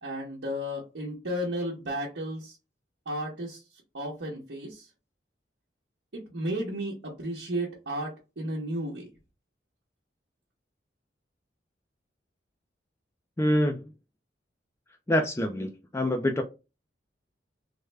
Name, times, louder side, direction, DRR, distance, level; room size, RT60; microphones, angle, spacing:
voice 1, 0.0-2.6 3.1-3.6 3.9-4.9 6.1-9.1, equal, 75° right, 0.9 m, -33 dB
voice 2, 13.4-13.8 15.1-16.4, left 1 dB, 15° left, 0.3 m, -25 dB
3.3 x 2.1 x 3.3 m
head